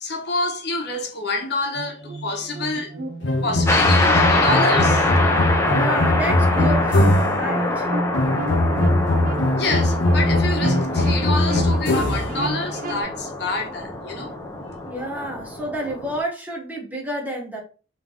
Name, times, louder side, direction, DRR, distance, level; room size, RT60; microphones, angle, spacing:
voice 1, 0.0-2.9 3.4-5.1 9.6-14.3, left 3 dB, 65° left, 1.0 m, -27 dB
sound 1, 1.7-13.0, right 1 dB, 50° right, 0.6 m, -30 dB
sound 2, 3.2-7.5 8.1-12.4, left 1 dB, 90° left, 0.7 m, -21 dB
sound 3, 3.7-16.2, left 2 dB, 15° left, 0.7 m, -24 dB
voice 2, 5.7-7.0 7.3-8.0 14.9-17.6, right 1 dB, 10° right, 1.0 m, -29 dB
3.5 x 3.2 x 3.7 m
head